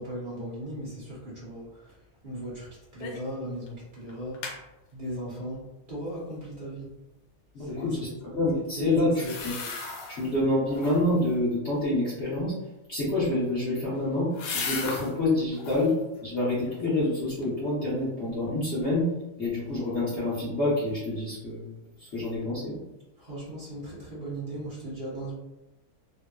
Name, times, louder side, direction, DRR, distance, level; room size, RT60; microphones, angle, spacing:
voice 1, 0.0-4.6 4.9-6.9 7.6-8.2 8.5-9.4 23.2-25.3, right 1 dB, 70° right, -8 dB, 0.4 m, -38 dB
sound 1, 3.0-3.3 3.7-3.8 4.1-4.6 9.1-10.3 10.7-11.2 13.2-15.1 15.5-16.0 16.4-17.1 17.4-17.5, left 4 dB, 80° left, 1.4 m, -37 dB
voice 2, 7.5-8.0 8.2-9.1 9.4-9.5 10.1-12.5 12.9-14.3 14.5-15.9 16.2-19.1 19.4-21.7 22.0-22.8, left 2 dB, 45° left, -9 dB, 0.9 m, -27 dB
3.4 x 2.7 x 2.3 m, 0.96 s
omnidirectional pair, 2.3 m